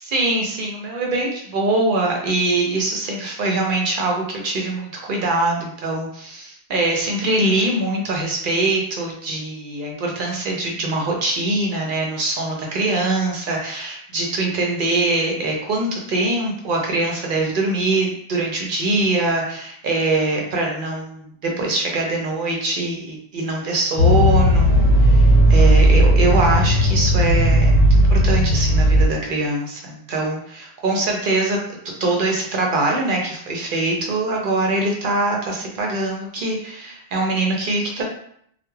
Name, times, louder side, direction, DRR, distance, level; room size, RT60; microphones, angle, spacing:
voice 1, 0.0-31.6 31.8-38.0, right 2 dB, 60° right, 0 dB, 0.6 m, -23 dB
sound 1, 24.0-29.1, equal, 40° left, 0.8 m, -15 dB
2.2 x 2.1 x 3.0 m, 0.68 s
omnidirectional pair, 1.1 m